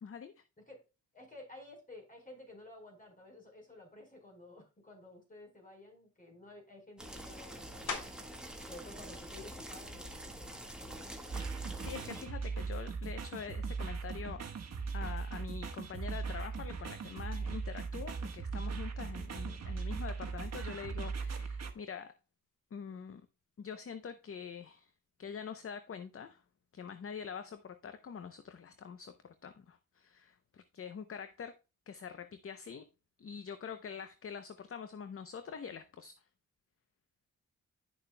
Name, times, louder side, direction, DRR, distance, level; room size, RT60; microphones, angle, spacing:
voice 1, 0.0-0.4 11.8-14.4 14.9-22.1 22.7-23.2 23.6-24.9 25.2-26.4 26.7-31.5 31.9-32.9 33.2-36.2, left 6 dB, 45° left, 0.7 m, -45 dB
voice 2, 1.1-8.2 8.7-11.1, left 2 dB, 25° left, 4.6 m, -53 dB
sound 1, 7.0-12.2, right 1 dB, 5° right, 1.6 m, -46 dB
sound 2, 7.9-8.5 9.0-13.5 14.0-19.1 19.4-25.1, left 5 dB, 75° left, 2.0 m, -51 dB
sound 3, 11.3-21.7, right 5 dB, 55° right, 1.2 m, -39 dB
10.5 x 6.7 x 2.2 m
cardioid pair, 95°, 31 cm